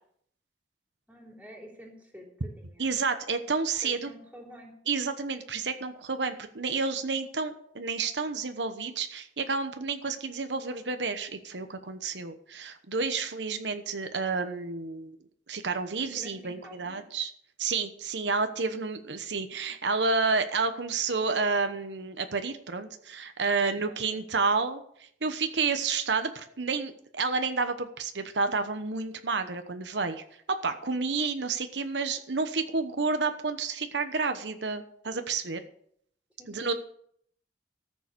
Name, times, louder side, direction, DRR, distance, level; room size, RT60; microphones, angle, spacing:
voice 1, 1.1-3.0 3.8-4.8 16.0-17.0 23.5-24.3 36.4-36.7, equal, 10° right, -1 dB, 3.6 m, -49 dB
voice 2, 2.8-4.1 4.9-15.2 15.5-17.3 17.6-24.8 25.2-30.2 30.6-35.6 36.5-36.7, right 4 dB, 85° right, 8 dB, 1.0 m, -30 dB
14.0 x 7.1 x 6.8 m, 0.65 s
head